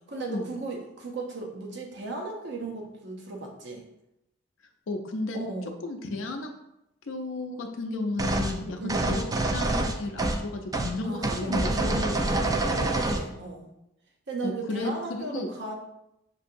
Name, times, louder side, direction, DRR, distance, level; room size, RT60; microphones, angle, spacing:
voice 1, 0.1-3.8 5.3-5.7 8.8-9.1 11.0-13.7 14.3-15.7, right 3 dB, 65° right, 0 dB, 0.7 m, -36 dB
voice 2, 4.9-5.4 5.8-6.5 7.1-9.2 9.5-12.5 14.4-15.5, left 2 dB, 80° left, 3 dB, 0.5 m, -33 dB
sound 1, 8.2-8.5 8.9-10.4 10.7-10.9 11.2-13.3, right 2 dB, 20° right, 0.3 m, -26 dB
6.1 x 2.7 x 2.5 m, 0.84 s
head